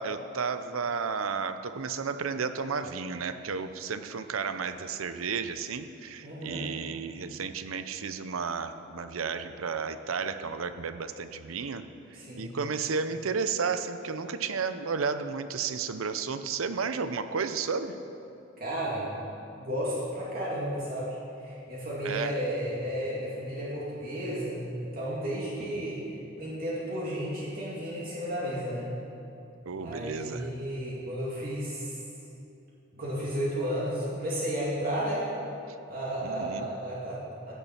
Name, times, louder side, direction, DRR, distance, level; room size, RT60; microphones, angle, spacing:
voice 1, 0.0-17.9 22.0-22.4 25.6-25.9 29.7-30.5 36.2-36.6, right 5 dB, 90° right, 10 dB, 0.6 m, -33 dB
voice 2, 6.2-6.7 12.1-12.6 18.6-19.1 19.6-21.2 21.4-26.0 26.3-28.9 29.8-32.0 32.9-35.3 35.9-37.5, equal, 45° right, -7 dB, 2.3 m, -33 dB
16.0 x 7.1 x 5.9 m, 2.8 s
head